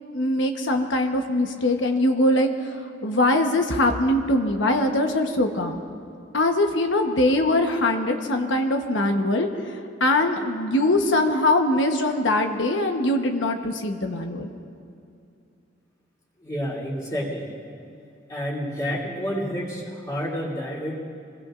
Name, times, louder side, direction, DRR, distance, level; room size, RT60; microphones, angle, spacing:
voice 1, 0.1-5.8 6.3-14.5, left 1 dB, 85° left, 4 dB, 1.2 m, -22 dB
voice 2, 16.4-17.5 18.3-21.0, equal, 20° left, -4 dB, 2.9 m, -29 dB
25.5 x 21.5 x 2.6 m, 2.4 s
head